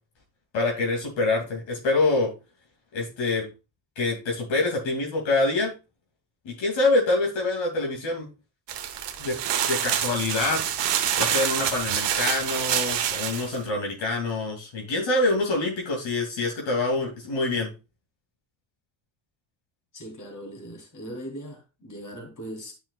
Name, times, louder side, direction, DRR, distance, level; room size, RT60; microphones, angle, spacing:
voice 1, 0.5-2.3 2.9-3.4 4.0-5.7 6.4-8.3 9.2-9.4 9.7-10.6 11.2-17.7, left 2 dB, 70° left, 2.6 m, -25 dB
sound 1, 8.7-13.6, right 9 dB, 60° right, 1.1 m, -27 dB
voice 2, 19.9-22.7, equal, 40° left, 3.0 m, -39 dB
10.0 x 5.6 x 2.3 m
cardioid pair, 80°, 47 cm